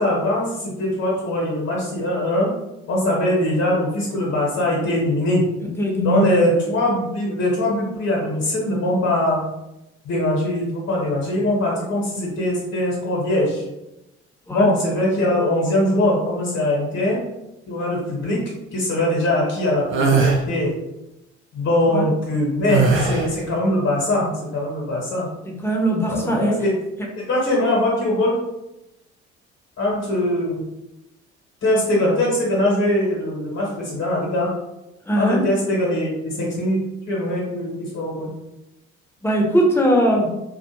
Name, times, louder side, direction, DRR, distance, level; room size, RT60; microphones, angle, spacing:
voice 1, 0.0-2.5 2.9-5.4 6.0-9.4 10.0-13.6 14.5-17.2 17.7-18.4 18.7-20.7 21.5-25.3 26.1-26.7 27.3-28.4 29.8-30.6 31.6-34.5 35.1-38.3, left 1 dB, 50° left, -4 dB, 1.0 m, -21 dB
voice 2, 5.8-6.3 14.5-14.7 21.9-22.0 25.4-26.6 35.1-35.5 39.2-40.3, equal, 5° left, -1 dB, 0.7 m, -20 dB
sound 1, 19.9-20.4 22.7-23.4, right 5 dB, 35° right, 0.6 m, -19 dB
2.4 x 2.3 x 2.9 m, 0.92 s
figure-of-eight pair, 50°, 34 cm